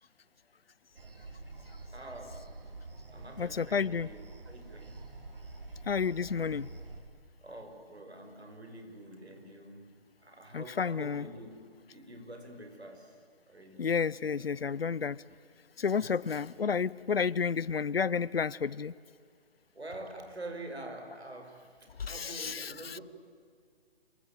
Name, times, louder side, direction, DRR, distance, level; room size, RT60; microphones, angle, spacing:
sound 1, 0.9-7.0, right 2 dB, 60° right, 4.1 m, -47 dB
voice 1, 1.9-2.7 3.1-5.0 7.4-13.8 16.0-16.4 19.7-23.0, right 1 dB, 85° right, 5 dB, 5.9 m, -47 dB
voice 2, 3.4-4.1 5.9-6.7 10.5-11.2 13.8-15.2 15.8-18.9 22.0-23.0, left 6 dB, 70° left, 22 dB, 0.8 m, -31 dB
27.5 x 22.5 x 9.3 m, 2.2 s
figure-of-eight pair, 150°, 31 cm